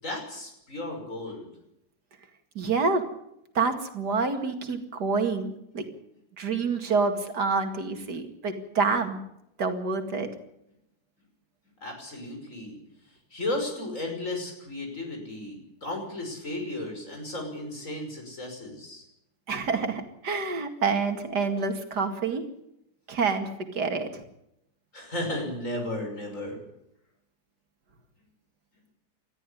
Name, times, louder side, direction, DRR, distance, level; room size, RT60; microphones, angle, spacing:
voice 1, 0.0-1.5 11.8-12.8 13.3-19.0 24.9-26.6, left 1 dB, 50° left, 2 dB, 6.4 m, -34 dB
voice 2, 2.6-3.0 3.5-5.9 6.4-9.2 9.6-10.3 19.5-22.4 23.1-24.2, right 4 dB, 85° right, 6 dB, 2.7 m, -27 dB
20.0 x 13.5 x 10.0 m, 0.80 s
omnidirectional pair, 1.7 m